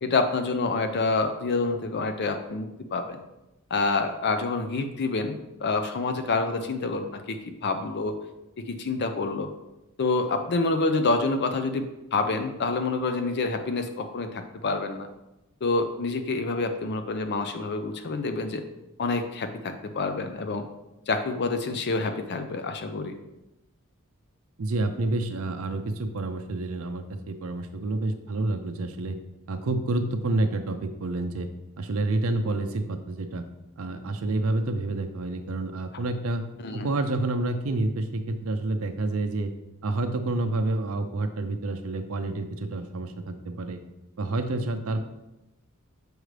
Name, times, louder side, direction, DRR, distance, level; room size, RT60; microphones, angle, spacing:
voice 1, 0.0-3.2 3.7-8.1 8.7-9.5 10.0-15.1 15.6-18.6 19.0-20.6 21.1-23.1 36.6-36.9, left 3 dB, 50° left, 7 dB, 0.5 m, -27 dB
voice 2, 24.6-29.2 29.5-31.5 31.8-33.5 33.8-36.4 36.7-39.5 39.8-43.8 44.2-45.0, right 2 dB, 65° right, 6 dB, 0.5 m, -28 dB
6.4 x 4.7 x 3.3 m, 0.94 s
head